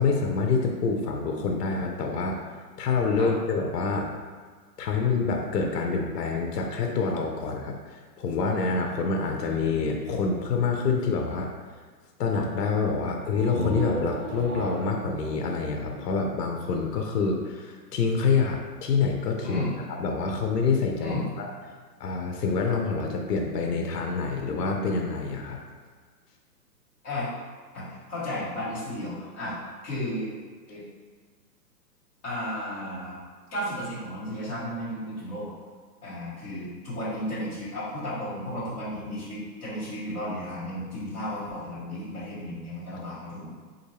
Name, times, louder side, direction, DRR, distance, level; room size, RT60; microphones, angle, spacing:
voice 1, 0.0-2.4 2.8-4.1 4.8-11.5 12.2-19.6 20.0-21.5 22.0-25.6, left 4 dB, 70° left, 2 dB, 0.7 m, -26 dB
sound 1, 13.2-16.9, right 2 dB, 65° right, 1.1 m, -35 dB
voice 2, 27.7-29.5 29.8-30.3 30.7-30.8 32.2-33.2 33.5-35.5 36.0-43.5, left 1 dB, 15° left, -10 dB, 0.8 m, -33 dB
3.6 x 2.6 x 2.9 m, 1.5 s
hypercardioid pair, 150°, 50 cm